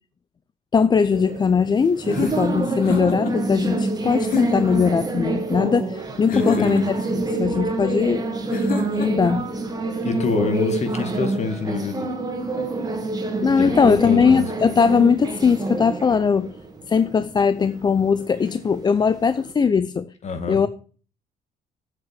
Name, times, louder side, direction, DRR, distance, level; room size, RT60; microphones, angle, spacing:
voice 1, 0.7-8.2 9.0-9.5 13.4-16.6 16.9-20.1 20.5-20.7, left 6 dB, 25° left, 0.5 m, -20 dB
sound 1, 1.1-19.5, right 3 dB, 25° right, 2.1 m, -27 dB
sound 2, 2.1-3.4 4.2-4.8 6.3-7.1 8.5-9.3, left 7 dB, 60° left, 2.4 m, -29 dB
voice 2, 6.3-6.7 10.0-12.1 13.5-14.5 20.2-20.6, left 5 dB, 40° left, 2.2 m, -26 dB
7.8 x 7.5 x 7.6 m
cardioid pair, 110°, 17 cm